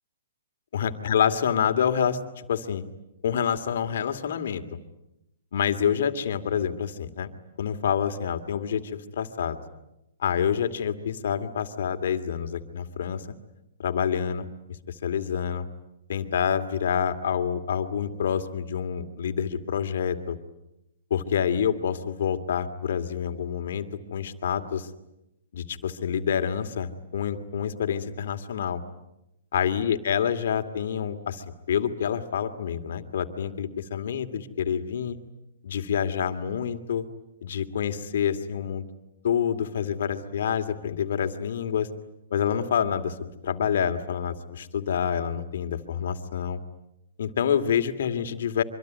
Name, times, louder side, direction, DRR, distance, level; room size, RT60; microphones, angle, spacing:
voice 1, 0.7-2.8 3.2-4.6 5.5-7.3 7.6-9.6 10.2-13.3 13.8-14.5 14.9-15.7 16.1-20.4 21.1-23.9 24.1-24.9 25.5-28.8 29.5-35.2 35.6-37.0 37.4-38.9 39.2-41.9 42.3-46.6 47.2-48.6, left 8 dB, 65° left, 8 dB, 2.5 m, -27 dB
25.0 x 24.5 x 9.4 m, 0.87 s
hypercardioid pair, 145°, 0 cm